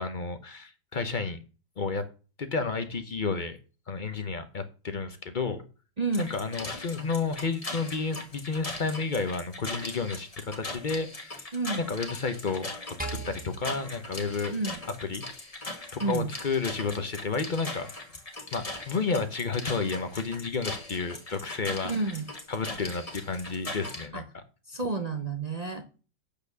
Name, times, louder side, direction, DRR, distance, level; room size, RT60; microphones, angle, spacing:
voice 1, 0.0-1.4 1.8-2.1 2.4-3.6 3.9-5.6 6.2-11.5 11.8-12.7 13.0-14.6 15.0-15.5 15.9-17.9 18.5-21.9 22.5-24.4, left 4 dB, 55° left, 9 dB, 0.5 m, -31 dB
voice 2, 6.0-6.3 11.5-11.8 14.5-14.8 16.0-16.3 21.8-22.3 24.1-24.2 24.7-26.0, right 3 dB, 70° right, 6 dB, 0.3 m, -30 dB
sound 1, 6.1-24.1, left 2 dB, 20° left, 1.4 m, -40 dB
sound 2, 13.0-15.4, right 3 dB, 10° right, 0.6 m, -41 dB
8.5 x 5.1 x 6.7 m, 0.35 s
omnidirectional pair, 2.0 m